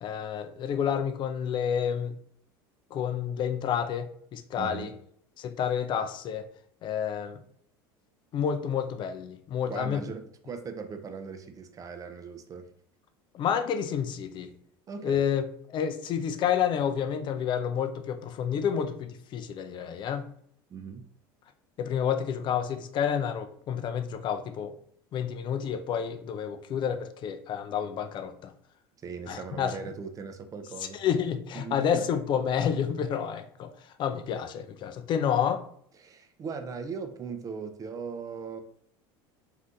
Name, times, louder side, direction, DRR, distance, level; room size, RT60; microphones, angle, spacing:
voice 1, 0.0-2.1 2.9-4.9 5.4-6.5 6.8-7.4 8.3-10.0 13.3-14.5 15.0-15.4 15.7-20.3 21.8-24.7 25.1-28.5 29.3-29.8 30.9-33.7 34.0-35.6, left 8 dB, 40° left, 9 dB, 0.4 m, -29 dB
voice 2, 4.6-4.9 9.7-12.7 14.9-15.2 20.7-21.1 29.0-31.0 31.5-31.9 36.0-38.6, right 5 dB, 30° right, 8 dB, 0.5 m, -39 dB
2.6 x 2.4 x 3.6 m, 0.66 s
hypercardioid pair, 95°, 12 cm